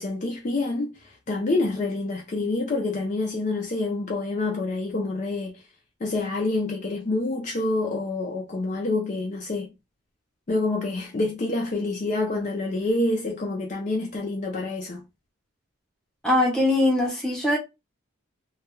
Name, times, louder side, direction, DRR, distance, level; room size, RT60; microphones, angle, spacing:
voice 1, 0.0-5.6 6.0-9.7 10.5-15.0, left 2 dB, 35° left, 0.4 m, -27 dB
voice 2, 16.2-17.6, left 1 dB, 5° left, 0.7 m, -21 dB
2.2 x 2.1 x 3.0 m
head